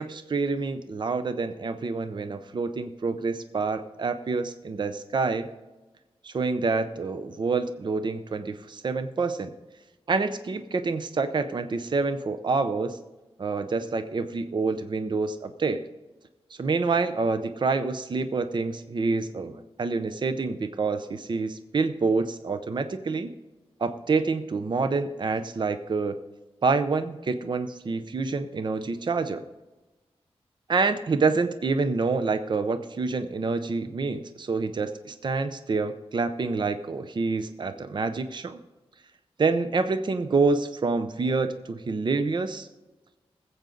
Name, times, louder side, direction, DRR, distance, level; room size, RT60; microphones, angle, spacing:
voice 1, 0.0-5.5 6.2-9.5 10.1-13.0 13.4-15.8 16.6-23.3 23.8-26.2 26.6-29.4 30.7-38.6 39.4-42.7, right 4 dB, 45° right, 10 dB, 0.6 m, -27 dB
20.0 x 7.9 x 3.9 m, 1.1 s
wide cardioid pair, 140°, 10 cm